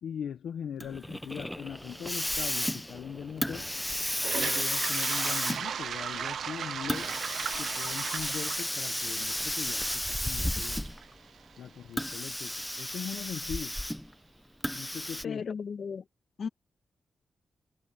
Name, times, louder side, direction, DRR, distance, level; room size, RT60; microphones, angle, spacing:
voice 1, 0.0-3.7 4.4-7.1 7.6-10.9 11.6-13.8 14.6-15.4, left 8 dB, 90° left, 1.0 m, -40 dB
Hiss, 0.8-11.1 11.9-14.1 14.6-15.2, left 1 dB, 5° left, 1.1 m, -33 dB
Toilet flush, 4.1-12.1, right 8 dB, 75° right, 0.6 m, -37 dB
voice 2, 15.2-16.0 16.4-16.5, left 6 dB, 60° left, 1.6 m, -35 dB
cardioid pair, 105°, 0 cm